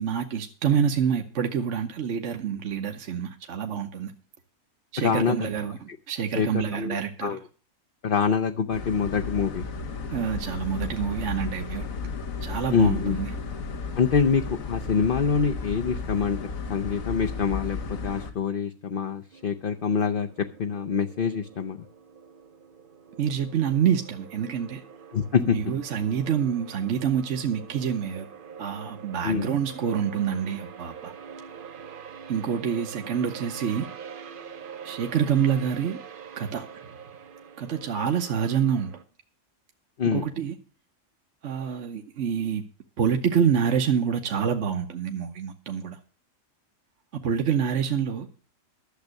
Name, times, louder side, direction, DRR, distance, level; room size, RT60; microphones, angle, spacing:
voice 1, 0.0-4.1 4.9-7.4 10.1-11.8 12.4-13.3 23.2-24.8 25.5-28.3 28.6-31.1 32.3-33.9 34.8-36.0 36.4-36.7 37.6-38.9 40.0-40.5 41.4-42.6 43.0-46.0 47.2-48.3, right 8 dB, 60° right, 1.2 m, -27 dB
voice 2, 5.0-5.5 6.3-7.4 8.0-9.6 12.7-13.2 14.0-16.4 16.7-17.8 18.0-20.3 20.6-21.8 25.1-25.6 29.2-29.5 40.0-40.2, left 6 dB, 50° left, 0.8 m, -25 dB
sound 1, 8.7-18.3, left 4 dB, 75° left, 1.7 m, -34 dB
sound 2, 19.3-39.0, right 7 dB, 45° right, 0.8 m, -45 dB
11.5 x 7.3 x 6.4 m
omnidirectional pair, 1.4 m